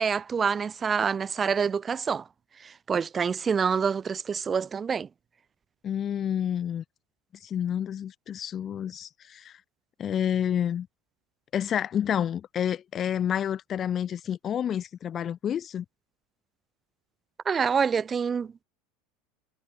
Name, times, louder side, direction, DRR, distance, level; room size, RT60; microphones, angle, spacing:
voice 1, 0.0-2.2 2.9-5.1 17.5-18.6, right 6 dB, 25° right, 0.8 m, -26 dB
voice 2, 5.8-6.8 7.4-9.6 10.0-10.9 11.5-15.8, left 9 dB, 30° left, 0.4 m, -29 dB
supercardioid pair, 125°, 0 cm